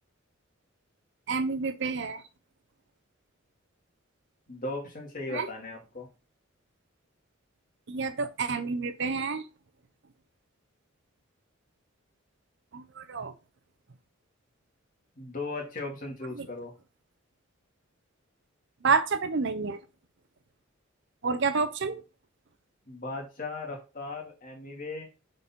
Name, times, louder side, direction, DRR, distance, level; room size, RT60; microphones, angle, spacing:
voice 1, 1.3-2.2 5.3-5.5 7.9-9.4 12.7-13.3 16.4-16.5 18.8-19.8 21.2-22.0, right 4 dB, 60° right, 0.7 m, -29 dB
voice 2, 4.5-6.1 15.2-16.7 22.9-25.1, left 2 dB, 40° left, 2.3 m, -37 dB
7.2 x 4.1 x 4.3 m
head